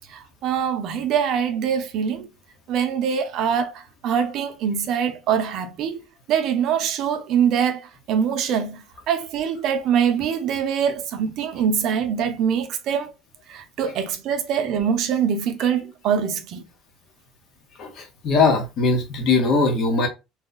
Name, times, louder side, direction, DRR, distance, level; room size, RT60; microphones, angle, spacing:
voice 1, 0.1-2.3 2.7-6.0 6.3-7.8 8.1-13.1 13.5-16.6, right 8 dB, 55° right, 0.6 m, -23 dB
voice 2, 17.8-20.1, left 4 dB, 50° left, 1.0 m, -20 dB
2.8 x 2.3 x 3.9 m
cardioid pair, 145°, 0 cm